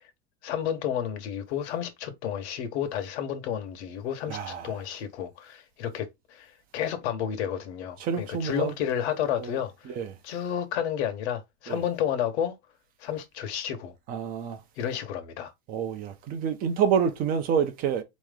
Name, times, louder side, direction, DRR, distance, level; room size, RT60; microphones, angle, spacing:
voice 1, 0.4-9.9 10.2-12.6 13.0-13.9 14.8-15.5, left 9 dB, 65° left, 1.3 m, -31 dB
voice 2, 4.3-4.8 8.0-8.7 9.2-9.6 9.9-10.1 11.7-11.8 14.1-14.6 15.7-18.0, right 7 dB, 25° right, 0.7 m, -28 dB
4.4 x 3.1 x 3.5 m
supercardioid pair, 170°, 35 cm